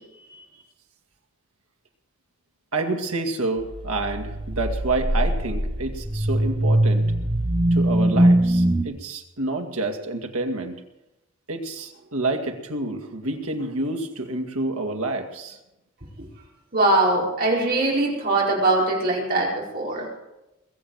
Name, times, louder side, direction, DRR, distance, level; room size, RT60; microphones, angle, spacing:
voice 1, 2.7-10.8 11.5-15.6, right 2 dB, 85° right, 4 dB, 2.1 m, -28 dB
sound 1, 3.6-8.8, right 1 dB, 25° right, 1.1 m, -22 dB
voice 2, 16.7-20.1, right 2 dB, 45° right, -4 dB, 4.7 m, -22 dB
21.5 x 7.4 x 7.8 m, 0.94 s
head